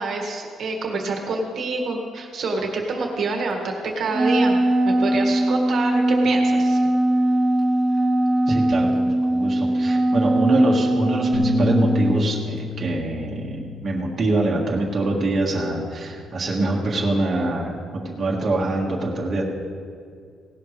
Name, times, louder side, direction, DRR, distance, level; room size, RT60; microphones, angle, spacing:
voice 1, 0.0-6.8, right 3 dB, 55° right, 1 dB, 1.7 m, -27 dB
Wind instrument woodwind instrument, 4.1-12.2, right 1 dB, 5° right, 1.0 m, -20 dB
voice 2, 8.5-19.4, right 2 dB, 35° right, -3 dB, 1.7 m, -24 dB
sound 1, 11.3-17.6, left 4 dB, 70° left, 2.1 m, -31 dB
18.0 x 11.5 x 3.3 m, 2.2 s
cardioid pair, 150°, 0 cm